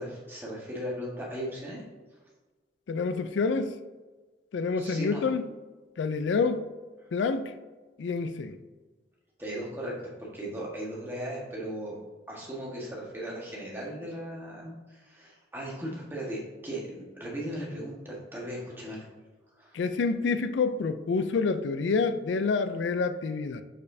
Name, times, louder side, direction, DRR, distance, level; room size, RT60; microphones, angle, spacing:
voice 1, 0.0-1.8 4.8-5.2 9.4-9.9 10.2-12.0 12.3-19.0 19.5-19.7, equal, 10° right, 1.4 m, -37 dB
voice 2, 2.9-3.8 4.5-5.5 6.0-6.7 7.1-7.5 8.0-8.6 19.7-23.6, left 4 dB, 80° left, 0.4 m, -28 dB
6.6 x 5.2 x 2.7 m
head